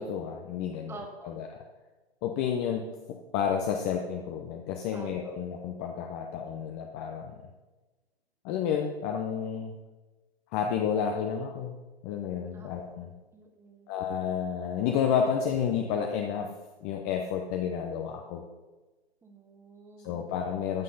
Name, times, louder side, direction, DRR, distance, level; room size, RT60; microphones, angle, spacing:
voice 1, 0.0-1.5 2.2-2.8 3.3-7.3 8.4-9.8 10.5-11.8 12.0-13.1 13.9-16.5 16.8-18.4 20.0-20.8, left 7 dB, 20° left, 3 dB, 0.6 m, -30 dB
voice 2, 0.9-1.3 4.9-5.3 12.5-12.7 13.3-13.9 19.2-20.3, right 3 dB, 10° right, 3 dB, 1.3 m, -48 dB
14.0 x 7.5 x 3.9 m, 1.2 s
hypercardioid pair, 135°, 31 cm